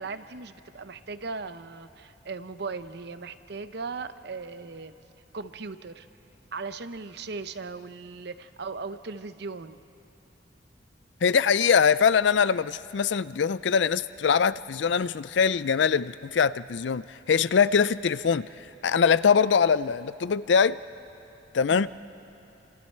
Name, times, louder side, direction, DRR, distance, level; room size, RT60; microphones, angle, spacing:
voice 1, 0.0-4.9 5.3-6.1 6.5-9.8 21.7-21.9, right 4 dB, 60° right, 11 dB, 0.7 m, -38 dB
voice 2, 11.2-18.5 18.8-20.8 21.5-21.9, left 6 dB, 65° left, 16 dB, 0.4 m, -23 dB
28.0 x 27.0 x 4.5 m, 2.9 s
head